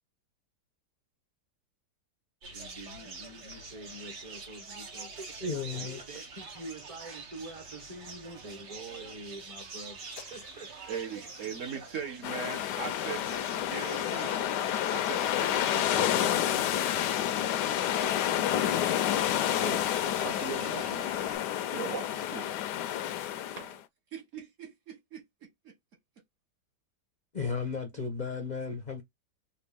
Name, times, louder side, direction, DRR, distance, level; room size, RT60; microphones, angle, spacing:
sound 1, 2.4-21.4, right 4 dB, 80° right, 1.8 m, -47 dB
voice 1, 2.5-5.3 5.7-10.0 10.3-11.2, right 2 dB, 25° right, 0.9 m, -46 dB
voice 2, 5.4-6.0 27.3-29.0, left 5 dB, 45° left, 0.5 m, -34 dB
sound 2, 10.2-20.1, left 10 dB, 65° left, 0.8 m, -46 dB
voice 3, 10.9-14.5 14.9-16.7 17.9-18.2 19.5-21.1 21.7-22.5 23.3-23.8 24.1-25.7, right 7 dB, 55° right, 1.1 m, -41 dB
sound 3, 12.2-23.8, left 11 dB, 85° left, 1.2 m, -29 dB
4.2 x 2.3 x 3.4 m
omnidirectional pair, 1.8 m